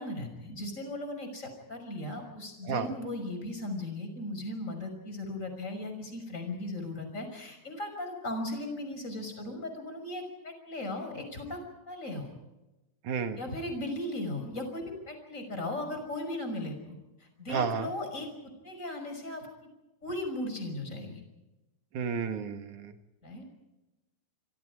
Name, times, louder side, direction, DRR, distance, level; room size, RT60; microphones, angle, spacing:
voice 1, 0.0-11.6 11.9-12.3 13.4-18.3 18.6-19.5 20.0-21.2 23.2-23.4, left 1 dB, 15° left, 5 dB, 5.9 m, -37 dB
voice 2, 13.0-13.4 17.5-17.9 21.9-22.9, right 6 dB, 55° right, 7 dB, 2.7 m, -31 dB
26.5 x 26.0 x 4.9 m, 1.0 s
omnidirectional pair, 4.9 m